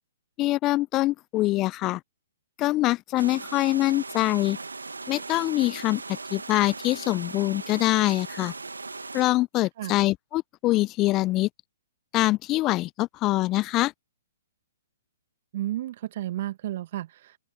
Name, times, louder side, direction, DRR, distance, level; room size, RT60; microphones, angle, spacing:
voice 1, 0.4-2.0 2.6-4.6 5.1-8.5 9.1-11.5 12.1-13.9, left 18 dB, 30° left, 0.6 m, -24 dB
sound 1, 3.2-9.2, right 3 dB, 80° right, 2.1 m, -38 dB
voice 2, 15.5-17.4, right 14 dB, 50° right, 1.7 m, -32 dB
open air
figure-of-eight pair, 120°, 0 cm